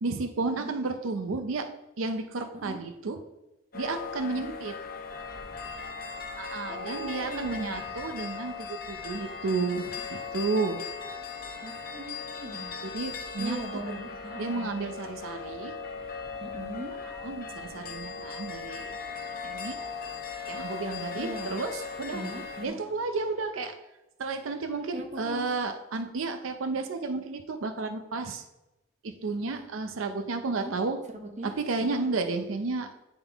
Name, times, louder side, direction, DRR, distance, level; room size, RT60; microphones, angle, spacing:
voice 1, 0.0-1.7 2.0-3.2 3.7-4.7 6.4-10.8 12.8-13.9 14.4-15.7 17.1-18.9 19.4-19.8 20.5-22.2 22.6-23.8 24.2-28.4 29.0-31.0 31.4-32.9, right 3 dB, 90° right, 7 dB, 0.5 m, -32 dB
sound 1, 3.7-22.7, left 5 dB, 50° left, 0.8 m, -38 dB
voice 2, 6.7-7.9 11.6-12.7 13.4-14.8 16.4-17.0 21.2-21.5 22.1-22.8 24.9-25.5 29.4-29.6 30.6-30.7 31.1-32.0, right 1 dB, 35° right, 3 dB, 0.8 m, -40 dB
10.0 x 3.7 x 3.4 m, 0.97 s
head